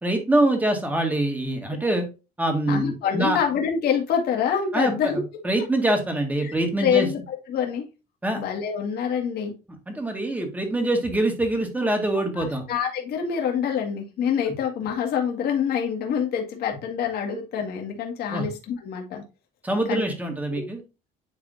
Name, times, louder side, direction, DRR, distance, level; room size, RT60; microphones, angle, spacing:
voice 1, 0.0-2.1 2.4-3.4 4.7-7.1 8.2-8.4 9.9-12.6 18.3-18.5 19.6-20.8, right 1 dB, 10° right, 3 dB, 1.8 m, -24 dB
voice 2, 2.7-5.2 6.4-7.9 8.3-9.5 12.4-19.2 19.9-20.0 20.5-20.7, left 7 dB, 70° left, 2 dB, 1.9 m, -26 dB
9.8 x 3.6 x 2.6 m, 0.28 s
cardioid pair, 110°, 17 cm